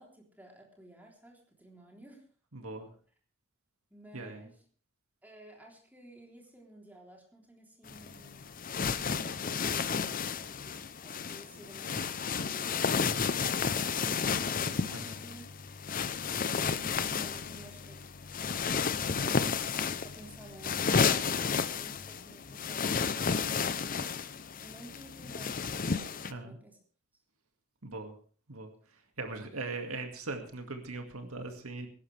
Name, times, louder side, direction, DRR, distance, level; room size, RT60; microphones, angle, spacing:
voice 1, 0.0-2.3 2.6-2.7 3.9-4.6 5.2-8.5 9.6-12.8 14.0-15.4 15.9-18.1 19.2-19.7 20.0-23.4 24.6-26.8, right 1 dB, 10° right, -1 dB, 3.5 m, -54 dB
voice 2, 2.5-2.9 4.1-4.5 14.9-15.2 26.3-26.6 27.8-28.1 28.5-31.9, right 3 dB, 85° right, 5 dB, 2.1 m, -40 dB
sound 1, 7.9-26.3, left 6 dB, 40° left, 0.7 m, -32 dB
22.0 x 11.5 x 3.4 m, 0.41 s
head